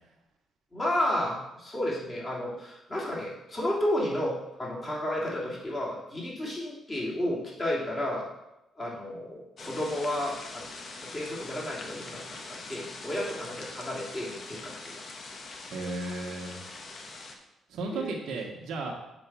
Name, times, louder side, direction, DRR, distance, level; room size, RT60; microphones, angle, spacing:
voice 1, 0.7-8.3 8.8-10.7 11.0-14.8 17.9-18.1, left 1 dB, 25° left, -5 dB, 2.9 m, -32 dB
sound 1, 9.6-17.3, left 3 dB, 50° left, 1.2 m, -43 dB
voice 2, 15.7-16.6 17.7-18.9, right 3 dB, 75° right, -1 dB, 1.3 m, -34 dB
7.2 x 4.6 x 6.2 m, 0.92 s
cardioid pair, 90°, 0 cm